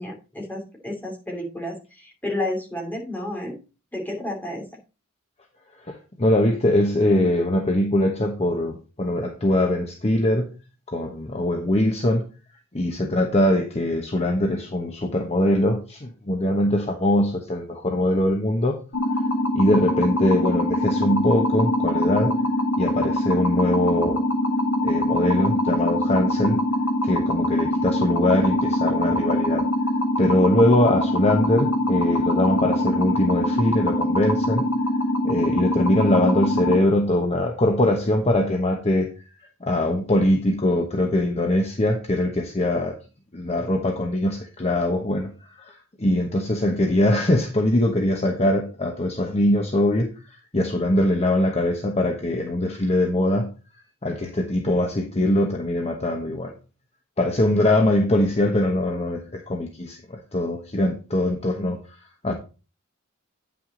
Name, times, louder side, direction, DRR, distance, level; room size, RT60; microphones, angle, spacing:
voice 1, 0.0-3.6 3.9-4.6, left 1 dB, 10° left, 2.8 m, -31 dB
voice 2, 5.8-10.5 10.9-12.3 12.7-18.8 19.5-22.4 22.8-24.2 24.8-26.6 27.0-29.6 30.2-34.7 35.2-39.1 39.6-43.0 43.3-50.1 50.5-53.5 54.0-56.5 57.2-61.8 62.2-62.3, left 1 dB, 30° left, 1.0 m, -22 dB
sound 1, 18.9-36.8, left 1 dB, 75° left, 1.7 m, -23 dB
9.3 x 5.9 x 3.9 m
head